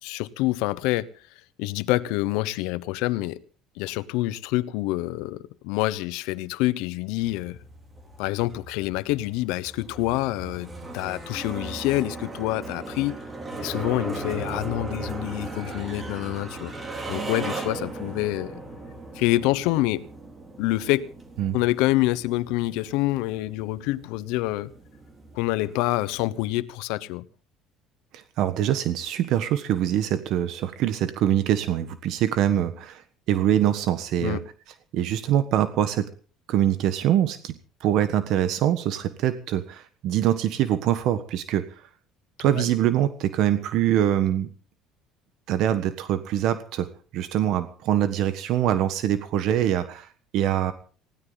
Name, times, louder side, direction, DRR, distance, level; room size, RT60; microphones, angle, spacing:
voice 1, 0.0-1.1 1.6-3.4 3.8-7.6 8.2-13.2 13.6-16.7 17.1-18.6 19.1-20.1 20.6-21.1 21.5-24.7 25.3-27.2 34.2-34.5 42.4-42.6, left 18 dB, 85° left, 0.9 m, -26 dB
sound 1, 7.2-26.5, right 2 dB, 20° right, 3.8 m, -37 dB
voice 2, 28.1-33.0 33.3-34.4 34.9-36.1 36.5-41.7 42.4-44.5 45.5-50.7, right 11 dB, 60° right, 1.4 m, -24 dB
20.0 x 16.5 x 4.0 m
cardioid pair, 140°, 0 cm